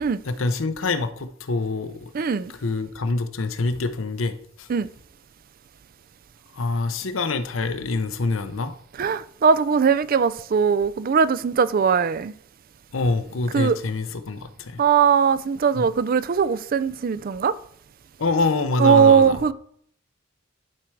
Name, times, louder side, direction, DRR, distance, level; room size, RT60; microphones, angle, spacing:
voice 1, 0.2-2.1 2.6-4.7 6.5-8.7 12.9-14.8 15.7-15.8 18.2-19.4, left 3 dB, 75° left, 0.7 m, -25 dB
voice 2, 2.1-2.5 4.7-4.9 9.0-12.3 13.5-13.8 14.8-17.5 18.8-19.5, right 6 dB, 45° right, 0.4 m, -20 dB
11.0 x 4.5 x 4.7 m
head